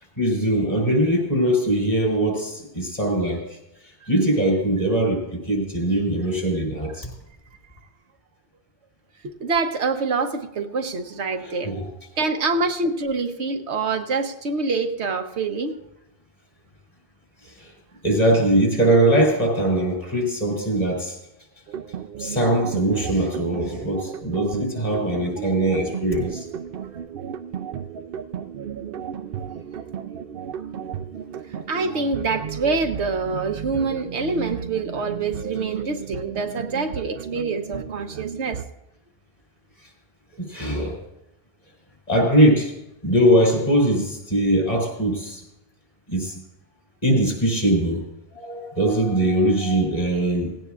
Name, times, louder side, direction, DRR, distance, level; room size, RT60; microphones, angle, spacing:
voice 1, 0.2-3.4 4.1-7.1 11.3-11.9 17.6-17.7 18.0-21.2 22.2-26.5 40.4-41.0 42.1-42.7 43.0-45.4 46.1-46.4 47.0-48.0 48.3-50.5, right 1 dB, 35° left, -1 dB, 3.9 m, -21 dB
voice 2, 9.2-11.7 12.2-15.8 31.7-38.6, right 4 dB, 90° right, 5 dB, 1.3 m, -26 dB
sound 1, 21.7-38.7, right 8 dB, 60° right, 0.8 m, -34 dB
17.5 x 16.5 x 2.5 m, 0.89 s
omnidirectional pair, 1.1 m